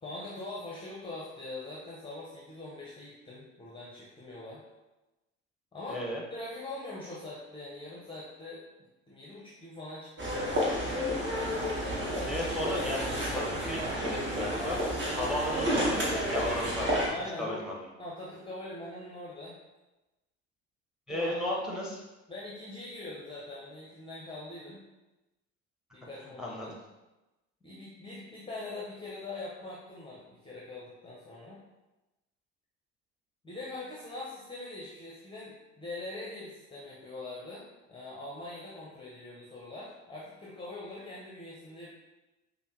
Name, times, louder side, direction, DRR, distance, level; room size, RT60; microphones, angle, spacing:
voice 1, 0.0-4.6 5.7-6.0 6.3-8.6 9.1-11.0 17.1-17.6 18.0-19.6 21.1-21.6 22.3-24.8 25.9-26.8 27.6-31.6 33.4-37.6 37.9-41.9, left 2 dB, 15° left, -5 dB, 0.8 m, -43 dB
voice 2, 5.9-6.2 12.3-14.8 15.1-16.9 17.4-17.8 21.1-22.0 26.4-26.7, left 1 dB, ahead, -2 dB, 1.1 m, -34 dB
sound 1, 10.2-17.1, equal, 30° right, 1.2 m, -31 dB
5.4 x 2.2 x 2.9 m, 1.0 s
hypercardioid pair, 65°, 36 cm